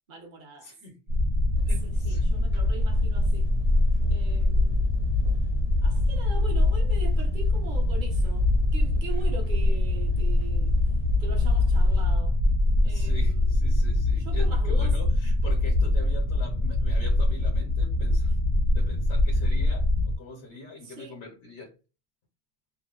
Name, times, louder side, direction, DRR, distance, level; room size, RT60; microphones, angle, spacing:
voice 1, 0.1-0.7 1.8-3.5 4.1-4.9 5.8-10.8 11.2-12.4 12.8-13.5 14.2-15.0 20.8-21.2, right 3 dB, 50° right, 0.9 m, -42 dB
voice 2, 0.6-1.1 1.7-2.3 9.1-9.2 12.9-18.4 18.6-21.8, left 3 dB, 75° left, 1.0 m, -43 dB
sound 1, 1.1-20.2, left 2 dB, 80° right, 0.9 m, -23 dB
Engine, 1.6-12.2, right 2 dB, 40° left, 0.7 m, -42 dB
2.7 x 2.1 x 2.3 m
omnidirectional pair, 1.2 m